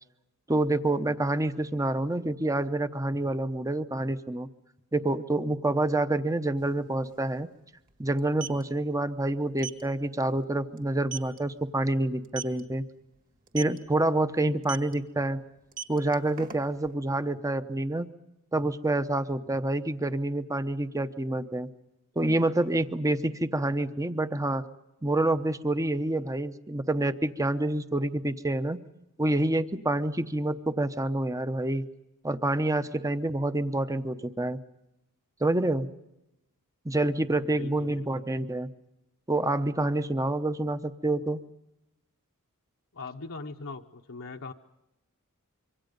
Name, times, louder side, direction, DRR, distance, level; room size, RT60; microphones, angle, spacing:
voice 1, 0.5-4.5 4.9-7.5 8.0-12.8 13.5-15.4 15.9-18.1 18.5-21.7 22.2-24.7 25.0-28.8 29.2-31.9 32.2-34.6 35.4-35.9 36.8-38.7 39.3-41.4, right 1 dB, 15° right, 11 dB, 0.8 m, -27 dB
sound 1, 6.6-6.7 6.9-7.1 8.1-8.6 9.6-9.8 10.3-10.4 10.8-10.9 11.1-11.4 12.2-12.6 13.5-13.8 14.6-14.9 15.6-16.9, right 7 dB, 40° right, 2.0 m, -37 dB
voice 2, 37.6-38.1 42.9-44.5, left 3 dB, 65° left, 2 dB, 1.0 m, -40 dB
26.0 x 24.5 x 5.3 m, 0.92 s
head